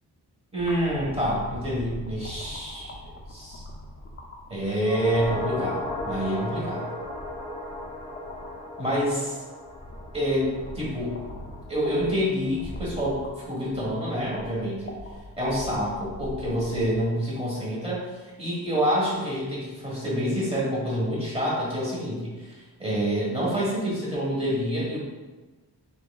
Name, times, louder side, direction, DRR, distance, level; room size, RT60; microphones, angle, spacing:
voice 1, 0.5-2.9 3.3-3.6 4.5-6.9 8.8-9.4 10.1-11.2 11.7-14.9 15.4-18.1 18.4-25.0, equal, 15° right, -6 dB, 1.4 m, -27 dB
sound 1, 0.6-17.0, left 1 dB, 30° left, 0.5 m, -42 dB
sound 2, 4.8-13.3 13.5-13.6, left 2 dB, 10° left, 0.9 m, -36 dB
5.9 x 3.5 x 2.4 m, 1.2 s
wide cardioid pair, 170°, 40 cm